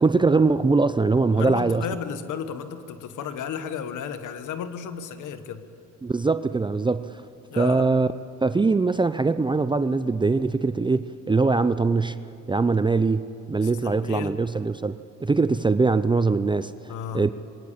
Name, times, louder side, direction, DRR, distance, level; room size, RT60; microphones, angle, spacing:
voice 1, 0.0-1.8 6.0-7.2 7.6-8.1 8.4-12.2 12.5-17.3, right 3 dB, 15° right, 13 dB, 0.5 m, -22 dB
voice 2, 1.3-5.6 7.5-7.8 13.6-14.3 16.9-17.3, left 7 dB, 80° left, 11 dB, 1.4 m, -33 dB
22.5 x 17.5 x 8.6 m, 2.6 s
cardioid pair, 90°, 30 cm